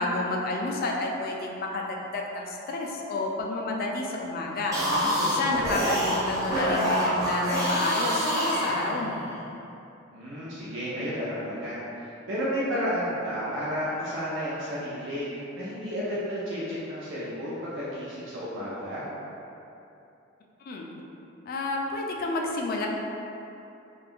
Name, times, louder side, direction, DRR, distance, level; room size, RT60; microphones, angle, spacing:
voice 1, 0.0-4.8 5.2-9.2 20.7-20.9 21.5-22.9, left 2 dB, 50° left, 0 dB, 0.3 m, -30 dB
Zombie Burst, 4.6-9.3, equal, 20° right, 0.7 m, -26 dB
voice 2, 4.8-5.9 10.1-19.0, equal, 65° right, -9 dB, 0.5 m, -32 dB
2.5 x 2.4 x 3.5 m, 2.8 s
head